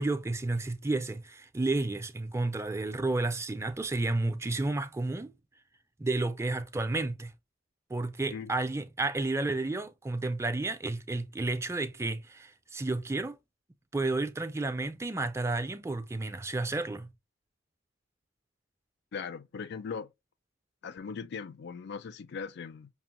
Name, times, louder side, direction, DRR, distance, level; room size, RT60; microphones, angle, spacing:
voice 1, 0.0-5.3 6.0-7.3 7.9-13.4 13.9-17.1, right 2 dB, 15° right, 0.4 m, -31 dB
voice 2, 19.1-20.1 20.8-22.9, left 5 dB, 60° left, 0.4 m, -39 dB
5.9 x 2.0 x 2.9 m
head